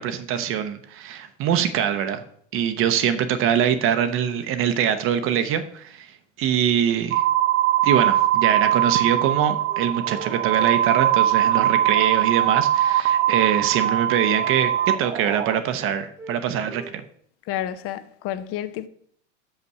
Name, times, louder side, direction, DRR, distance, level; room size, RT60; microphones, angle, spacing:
voice 1, 0.0-2.2 2.5-6.1 6.4-7.2 7.8-17.0, right 9 dB, 35° right, 0.7 m, -23 dB
sound 1, 7.1-15.6, right 12 dB, 85° right, 0.6 m, -21 dB
Wind instrument woodwind instrument, 9.6-13.0 13.3-14.9 15.2-15.5 15.8-16.4 16.7-16.9, right 3 dB, 10° right, 1.1 m, -40 dB
voice 2, 17.5-18.9, left 11 dB, 40° left, 0.7 m, -30 dB
6.0 x 5.5 x 6.7 m
supercardioid pair, 120°, 36 cm